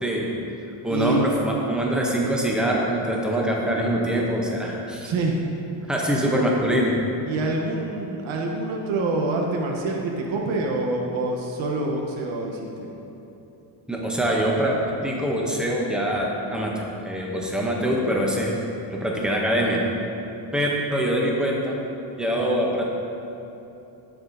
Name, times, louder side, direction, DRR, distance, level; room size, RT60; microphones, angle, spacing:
voice 1, 0.0-0.3 0.8-5.1 5.9-6.9 13.9-14.8 15.0-16.7 17.0-18.6 18.9-19.8 20.5-21.8 22.2-22.8, equal, ahead, -3 dB, 0.6 m, -24 dB
voice 2, 0.9-1.3 5.0-5.4 7.2-12.9, right 2 dB, 80° right, 0 dB, 0.9 m, -26 dB
12.5 x 4.8 x 2.6 m, 3.0 s
cardioid pair, 175°, 47 cm